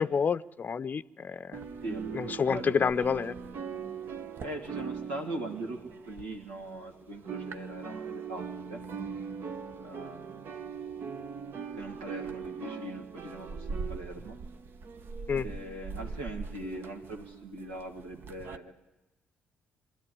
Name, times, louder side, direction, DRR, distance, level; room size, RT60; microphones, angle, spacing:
voice 1, 0.0-1.7 2.1-3.3 15.3-15.5, left 6 dB, 40° left, 16 dB, 0.6 m, -29 dB
sound 1, 1.5-6.9 7.1-18.6, right 5 dB, 55° right, 1.0 m, -40 dB
voice 2, 1.8-2.9 4.4-8.8 9.8-10.5 11.8-14.4 15.4-18.7, right 1 dB, 90° right, 1 dB, 2.4 m, -41 dB
23.0 x 13.0 x 9.9 m, 1.1 s
hypercardioid pair, 50°, 4 cm